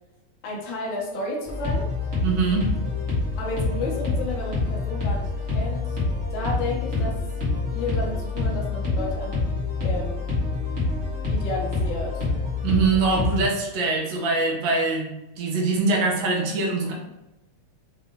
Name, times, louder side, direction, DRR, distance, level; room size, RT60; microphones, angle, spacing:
voice 1, 0.4-1.9 3.4-6.0 6.3-7.3 7.7-10.2 11.3-12.3, left 2 dB, 85° left, -3 dB, 1.0 m, -32 dB
sound 1, 1.5-13.5, left 3 dB, 45° right, 1.1 m, -27 dB
voice 2, 2.2-2.7 12.6-16.9, right 3 dB, 75° right, 0 dB, 1.9 m, -23 dB
5.3 x 2.7 x 2.8 m, 0.97 s
omnidirectional pair, 3.4 m